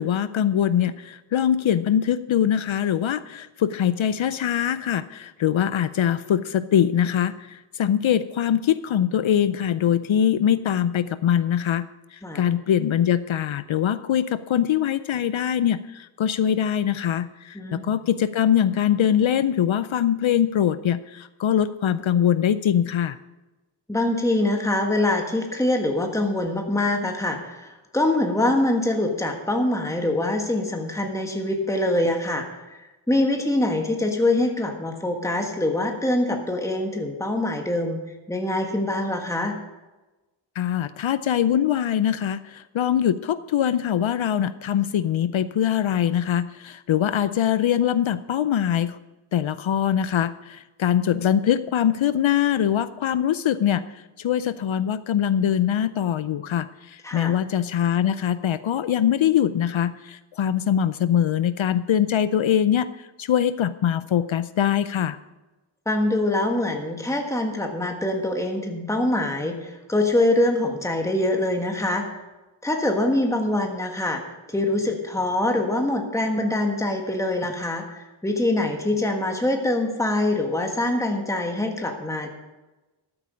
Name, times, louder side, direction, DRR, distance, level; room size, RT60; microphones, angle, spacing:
voice 1, 0.0-23.2 40.6-49.0 49.3-65.2, left 9 dB, 75° left, 14 dB, 0.5 m, -23 dB
voice 2, 17.5-17.9 23.9-38.0 38.3-39.6 57.0-57.3 65.8-72.0 72.6-82.3, left 1 dB, 5° left, 3 dB, 1.4 m, -24 dB
13.5 x 8.7 x 5.1 m, 1.1 s
wide cardioid pair, 75°, 48 cm